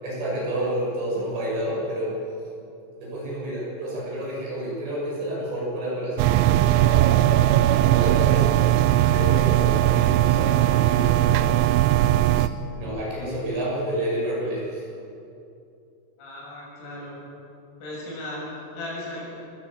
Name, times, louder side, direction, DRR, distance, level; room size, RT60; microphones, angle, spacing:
voice 1, 0.0-2.2 3.0-7.5 7.9-8.5 9.0-11.5 12.7-14.8, right 1 dB, 55° right, -4 dB, 8.6 m, -30 dB
sound 1, 6.2-12.5, right 13 dB, 85° right, 2.7 m, -19 dB
voice 2, 16.2-17.2 17.8-19.4, left 1 dB, 85° left, -4 dB, 9.7 m, -36 dB
21.5 x 14.0 x 8.7 m, 2.6 s
omnidirectional pair, 5.9 m